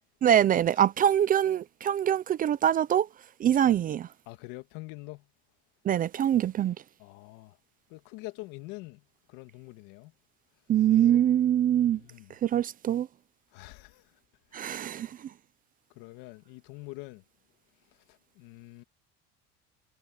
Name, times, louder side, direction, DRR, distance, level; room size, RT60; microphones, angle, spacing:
voice 1, 0.2-3.1 3.4-4.1 5.8-6.8 10.7-12.0 12.4-13.1 14.5-15.3, right 10 dB, 30° right, 0.4 m, -24 dB
voice 2, 4.3-5.3 7.0-7.6 7.9-9.0 9.3-10.1 10.9-11.2 11.8-12.3 13.5-14.1 14.5-14.7 16.0-17.2 18.1-18.8, left 21 dB, 85° left, 2.0 m, -45 dB
cardioid pair, 150°, 31 cm